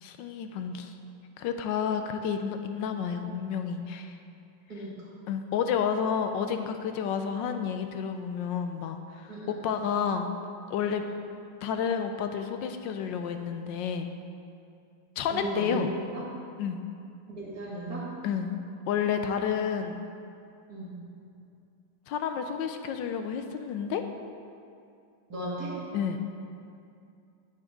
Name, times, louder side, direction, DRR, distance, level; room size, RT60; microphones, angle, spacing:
voice 1, 0.0-0.9 1.4-4.2 5.3-9.3 9.6-10.3 10.7-11.0 11.6-14.1 15.2-15.9 16.6-16.8 18.2-18.5 18.9-20.0 22.1-24.0 25.9-26.2, left 7 dB, 75° left, 7 dB, 1.2 m, -30 dB
voice 2, 4.7-5.1 9.3-9.6 11.0-11.1 15.2-15.9 16.1-16.2 17.4-18.1 20.7-20.9 25.3-25.8, right 1 dB, 50° right, -6 dB, 2.6 m, -35 dB
10.5 x 9.1 x 3.7 m, 2.5 s
omnidirectional pair, 2.2 m